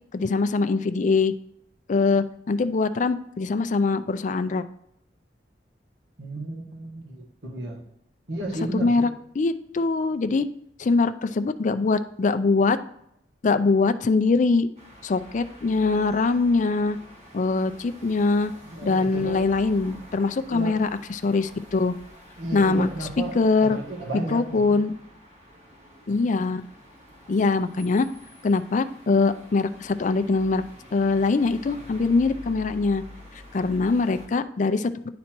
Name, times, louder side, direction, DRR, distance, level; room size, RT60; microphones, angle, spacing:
voice 1, 0.1-1.3 1.9-4.6 8.7-9.1 9.4-10.5 10.8-12.8 13.4-14.7 15.0-17.0 17.3-18.5 18.8-21.9 22.5-22.9 23.4-23.8 24.3-24.9 26.1-26.6 27.3-28.1 28.4-30.6 30.9-33.0 33.5-35.1, left 3 dB, 45° left, 11 dB, 0.4 m, -23 dB
voice 2, 6.2-7.8 8.3-9.1 18.6-19.4 20.5-20.8 22.4-24.8, right 1 dB, 85° right, 1 dB, 1.6 m, -33 dB
sound 1, 14.8-34.3, left 1 dB, 40° right, 2.1 m, -47 dB
9.5 x 4.1 x 4.4 m, 0.76 s
head